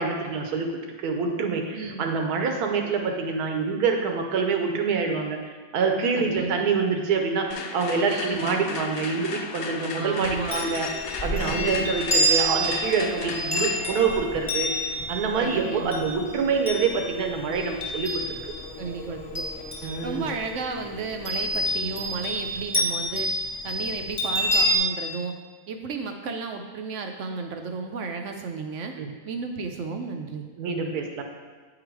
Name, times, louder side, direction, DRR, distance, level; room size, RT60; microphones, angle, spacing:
voice 1, 0.0-5.4 5.7-10.9 11.2-18.4 19.8-20.3 29.0-29.1 30.6-31.2, right 5 dB, 85° right, 3 dB, 1.3 m, -26 dB
voice 2, 6.2-6.6 8.1-8.4 10.0-10.7 11.4-11.9 15.4-15.9 18.8-23.3 23.6-25.4 25.7-28.9 29.3-30.5, right 4 dB, 65° right, 5 dB, 0.8 m, -33 dB
sound 1, 7.4-22.3, left 3 dB, 50° left, 0.9 m, -43 dB
sound 2, 7.5-15.5, left 5 dB, 75° left, 1.0 m, -36 dB
Chime, 10.2-18.7 19.1-20.4 21.2-24.8, equal, 20° left, 0.8 m, -28 dB
9.4 x 3.8 x 4.6 m, 1.4 s
omnidirectional pair, 1.6 m